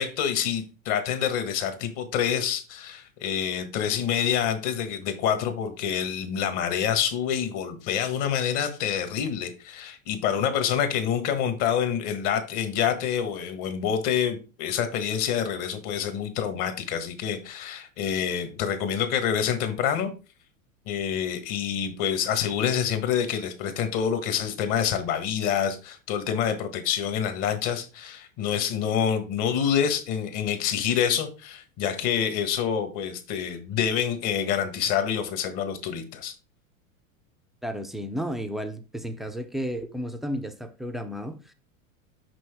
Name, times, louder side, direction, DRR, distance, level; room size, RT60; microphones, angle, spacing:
voice 1, 0.0-20.1 20.9-36.3, left 8 dB, 45° left, 1.6 m, -27 dB
voice 2, 37.6-41.5, equal, ahead, 0.4 m, -33 dB
6.1 x 5.5 x 3.5 m
hypercardioid pair, 110°, 41 cm